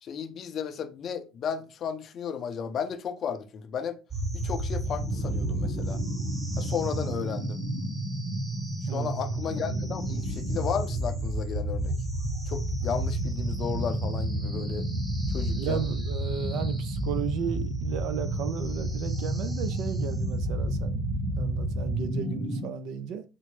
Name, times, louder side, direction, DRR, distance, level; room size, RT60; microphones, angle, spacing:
voice 1, 0.0-4.0 4.3-6.0 6.6-7.6 8.9-11.9 12.5-14.9 15.3-15.8, left 7 dB, 45° left, 0.5 m, -34 dB
sound 1, 4.1-22.7, right 1 dB, 25° right, 1.0 m, -30 dB
voice 2, 15.5-21.0 21.4-23.2, right 8 dB, 65° right, 0.4 m, -34 dB
4.3 x 2.0 x 3.1 m
supercardioid pair, 90°, 0 cm